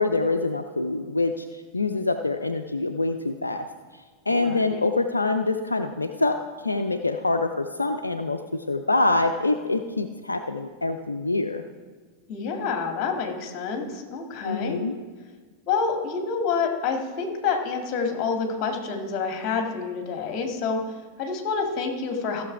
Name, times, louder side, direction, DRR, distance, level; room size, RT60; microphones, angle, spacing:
voice 1, 0.0-3.7 3.9-11.6 14.4-14.9, left 2 dB, 80° left, 7 dB, 0.4 m, -25 dB
voice 2, 4.3-4.8 12.3-14.8 15.7-22.4, left 5 dB, 35° left, 4 dB, 1.7 m, -28 dB
15.0 x 6.6 x 4.6 m, 1.4 s
figure-of-eight pair, 90°, 0 cm